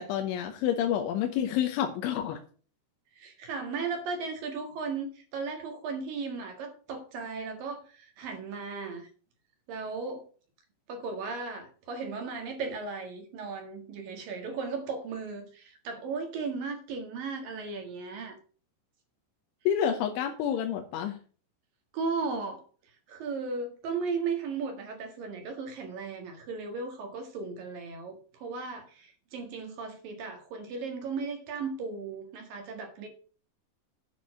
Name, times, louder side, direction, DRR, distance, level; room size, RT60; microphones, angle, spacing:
voice 1, 0.0-2.4 19.7-21.2, left 9 dB, 85° left, 4 dB, 3.4 m, -29 dB
voice 2, 3.1-9.1 9.7-10.2 10.9-18.4 21.9-22.6 23.1-33.1, right 4 dB, 60° right, 5 dB, 3.0 m, -36 dB
9.6 x 6.1 x 6.3 m, 0.40 s
omnidirectional pair, 5.4 m